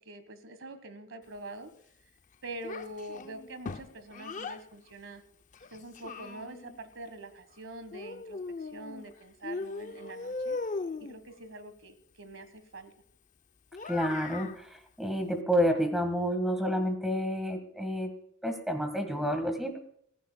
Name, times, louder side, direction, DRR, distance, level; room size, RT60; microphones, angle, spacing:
voice 1, 0.0-1.7 2.4-5.2 5.7-8.4 8.7-10.6 11.0-12.9, right 2 dB, 85° right, 10 dB, 1.6 m, -45 dB
Child speech kid speaking, 2.6-4.6 5.5-6.8 7.9-9.1 9.4-11.2 13.7-14.6, left 3 dB, 40° left, 0.6 m, -38 dB
voice 2, 13.9-18.1 18.4-19.8, equal, ahead, 5 dB, 1.7 m, -29 dB
25.0 x 15.0 x 2.3 m, 0.67 s
head